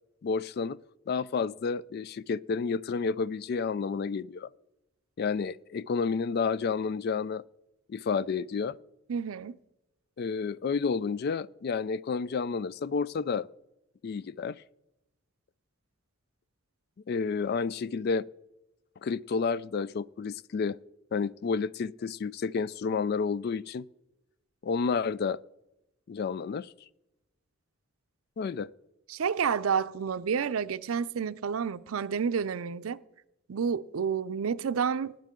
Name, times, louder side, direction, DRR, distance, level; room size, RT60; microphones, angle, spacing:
voice 1, 0.2-0.8 1.1-4.5 5.2-7.4 7.9-8.8 10.2-13.5 14.0-14.6 17.1-18.2 19.0-20.8 21.1-23.8 24.6-25.4 26.1-26.7 28.4-28.7, left 5 dB, 50° left, 0.3 m, -30 dB
voice 2, 9.1-9.6 29.1-33.0 33.5-35.2, right 6 dB, 90° right, 0.5 m, -30 dB
20.0 x 8.9 x 3.7 m
head